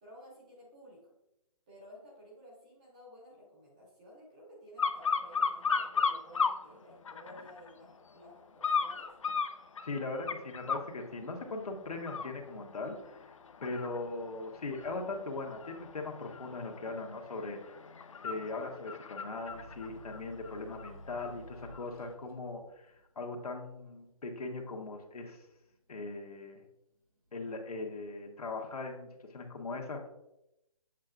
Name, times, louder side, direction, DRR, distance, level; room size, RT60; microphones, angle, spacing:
voice 1, 0.0-1.1 1.7-9.1, equal, 10° right, -4 dB, 0.8 m, -54 dB
sound 1, 4.8-6.6 7.0-7.7 8.6-10.9 11.4-11.6 12.0-21.3 21.7-21.8, left 5 dB, 60° left, 0.5 m, -35 dB
voice 2, 9.8-13.3 13.6-17.7 18.2-22.9 23.1-25.4 25.9-26.6 27.3-30.1, left 3 dB, 80° left, 1 dB, 1.4 m, -40 dB
sound 2, 19.5-26.7 27.2-27.9, equal, 70° right, 2.0 m, -53 dB
7.4 x 5.7 x 2.5 m, 0.85 s
hypercardioid pair, 175°, 19 cm